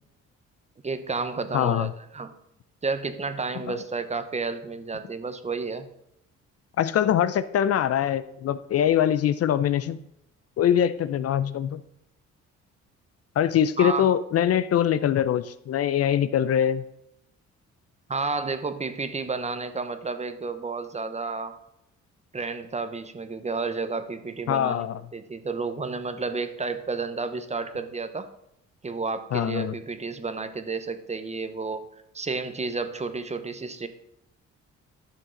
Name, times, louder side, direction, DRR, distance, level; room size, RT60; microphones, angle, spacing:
voice 1, 0.8-2.3 2.8-5.9 13.8-14.1 18.1-21.6 22.3-24.9 25.1-28.3 28.8-31.8 32.1-33.9, right 4 dB, 20° right, 10 dB, 0.8 m, -31 dB
voice 2, 1.5-1.9 3.6-3.8 6.8-10.0 10.6-11.8 13.4-16.8 24.5-25.0 29.3-29.7, left 10 dB, 55° left, 15 dB, 0.5 m, -23 dB
11.0 x 6.4 x 3.8 m, 0.81 s
cardioid pair, 90°, 30 cm